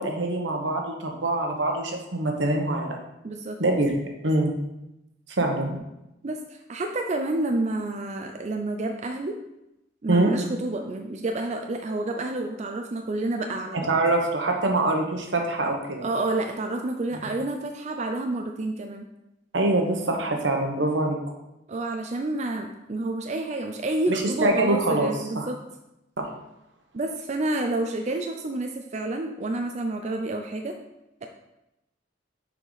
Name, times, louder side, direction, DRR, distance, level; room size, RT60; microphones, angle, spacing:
voice 1, 0.0-3.0 3.6-3.9 4.2-4.5 5.4-5.8 10.1-10.3 13.9-16.0 19.5-21.2 24.1-25.1 25.3-25.5 26.2-26.3, right 2 dB, 80° right, 2 dB, 1.1 m, -24 dB
voice 2, 3.2-3.8 6.2-9.4 10.0-13.9 16.0-19.1 21.7-25.6 26.9-30.8, right 2 dB, 40° right, 4 dB, 0.4 m, -29 dB
6.6 x 4.9 x 4.0 m, 0.90 s
head